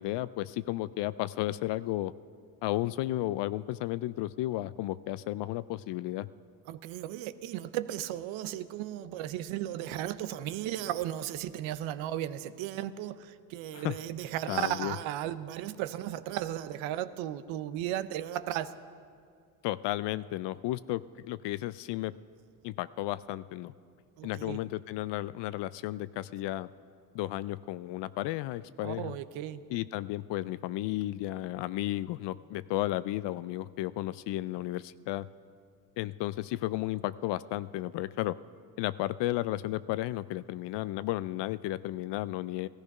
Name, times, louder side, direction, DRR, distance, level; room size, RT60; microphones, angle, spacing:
voice 1, 0.0-2.1 2.6-6.3 13.7-14.0 14.5-14.9 19.6-22.1 22.6-23.7 24.2-26.7 27.1-29.2 29.7-35.3 36.0-38.3 38.8-42.7, left 16 dB, 65° left, 0.5 m, -33 dB
voice 2, 6.7-18.7 24.2-24.6 28.8-29.6, right 12 dB, 75° right, 0.8 m, -35 dB
16.0 x 14.0 x 5.4 m
supercardioid pair, 70°, 47 cm